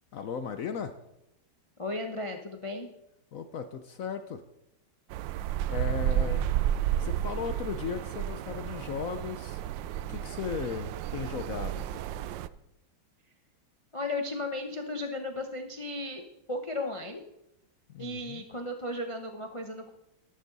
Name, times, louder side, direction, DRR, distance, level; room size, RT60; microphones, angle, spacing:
voice 1, 0.1-0.9 3.3-4.4 5.7-6.5 7.0-9.6 10.1-11.9 17.9-18.4, left 7 dB, 70° left, 9 dB, 0.8 m, -36 dB
voice 2, 1.8-2.9 6.1-6.4 13.9-16.2 16.5-17.2 18.0-19.9, left 2 dB, 40° left, 5 dB, 0.4 m, -35 dB
sound 1, 5.1-12.5, right 11 dB, 75° right, 1.2 m, -32 dB
13.0 x 11.5 x 4.0 m, 0.85 s
omnidirectional pair, 2.2 m